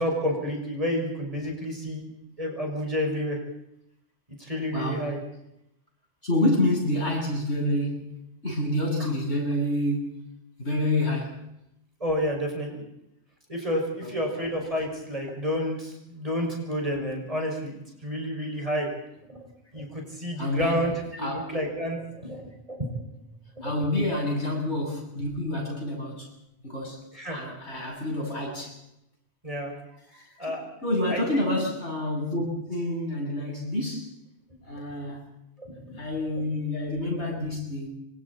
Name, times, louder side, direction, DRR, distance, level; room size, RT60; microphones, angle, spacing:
voice 1, 0.0-2.1 2.4-3.4 4.4-5.2 12.0-12.8 13.5-18.9 19.3-19.5 19.7-23.0 23.6-23.7 27.1-27.4 27.7-27.8 29.4-29.7 30.4-30.7 31.1-31.5 35.6-36.0 36.4-36.5, equal, 30° right, 1 dB, 6.0 m, -30 dB
voice 2, 4.7-5.2 6.2-11.5 14.0-14.3 20.4-21.5 23.6-26.3 26.6-28.8 30.1-34.1 34.7-35.3 36.0-37.9, left 1 dB, 70° left, -1 dB, 8.3 m, -28 dB
27.5 x 24.5 x 4.2 m, 0.81 s
omnidirectional pair, 1.2 m